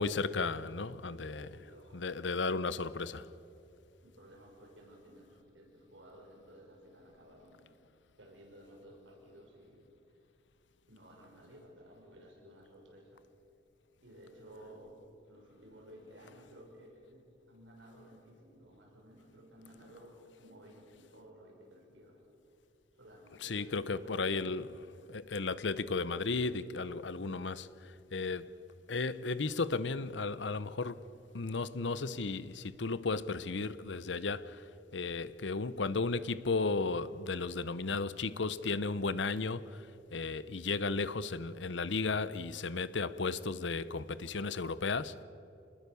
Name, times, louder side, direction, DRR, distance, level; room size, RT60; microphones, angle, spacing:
voice 1, 0.0-1.5 1.9-3.3 23.4-24.7 25.1-28.5 28.9-31.1 31.3-34.6 34.9-45.2, left 4 dB, 75° left, 0.8 m, -34 dB
voice 2, 1.0-2.0 4.0-7.7 8.2-9.8 10.9-13.2 14.0-15.0 15.3-22.2 22.9-24.7, equal, 90° right, 6.2 m, -55 dB
26.5 x 20.0 x 7.0 m
head